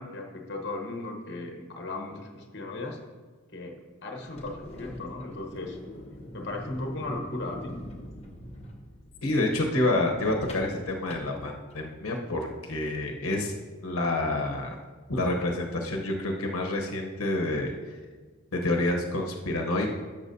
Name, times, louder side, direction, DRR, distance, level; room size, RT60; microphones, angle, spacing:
voice 1, 0.0-3.0 3.5-5.8 6.3-7.8, left 2 dB, 50° left, 2 dB, 1.1 m, -36 dB
sound 1, 4.3-12.0, left 1 dB, 30° left, 1.0 m, -44 dB
voice 2, 9.2-13.5 13.8-14.8 15.1-17.7 18.5-19.9, left 2 dB, 85° left, 2 dB, 0.9 m, -28 dB
12.0 x 7.0 x 2.7 m, 1.4 s
head